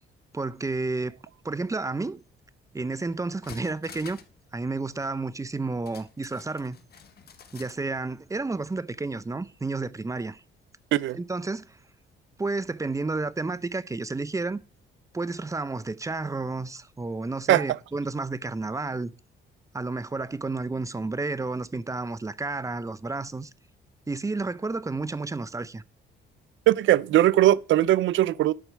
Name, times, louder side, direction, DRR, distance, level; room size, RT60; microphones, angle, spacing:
voice 1, 0.3-1.1 1.4-2.2 2.7-4.2 4.5-6.8 7.5-10.4 11.1-11.8 12.4-14.6 15.1-19.1 19.7-23.5 24.1-25.8, right 3 dB, 15° right, 0.6 m, -31 dB
sound 1, 3.2-4.4 4.7-4.8 5.9-7.8 8.2-8.3, left 7 dB, 50° left, 1.6 m, -48 dB
voice 2, 26.7-28.5, right 14 dB, 75° right, 0.5 m, -20 dB
11.0 x 4.5 x 7.4 m
cardioid pair, 90°, 20 cm